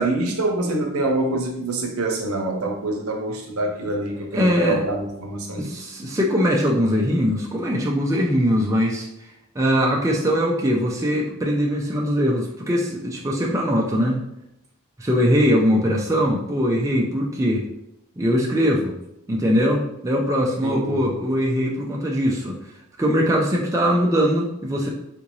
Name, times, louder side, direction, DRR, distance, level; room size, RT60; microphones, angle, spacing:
voice 1, 0.0-5.8 20.6-21.2, right 2 dB, 75° right, 2 dB, 0.7 m, -25 dB
voice 2, 4.1-4.8 5.6-9.1 9.6-14.2 15.0-17.7 18.2-18.9 19.3-22.5 23.0-24.9, equal, 15° right, -2 dB, 0.4 m, -21 dB
3.6 x 2.5 x 3.0 m, 0.80 s
head